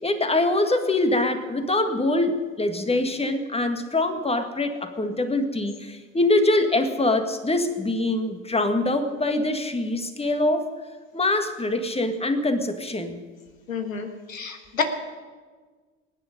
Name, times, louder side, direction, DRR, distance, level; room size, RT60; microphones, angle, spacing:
voice 1, 0.0-10.7 11.1-13.2, left 2 dB, 15° left, 7 dB, 1.8 m, -24 dB
voice 2, 13.7-14.8, left 6 dB, 85° left, 6 dB, 1.5 m, -29 dB
23.5 x 9.8 x 5.3 m, 1.4 s
figure-of-eight pair, 60°, 39 cm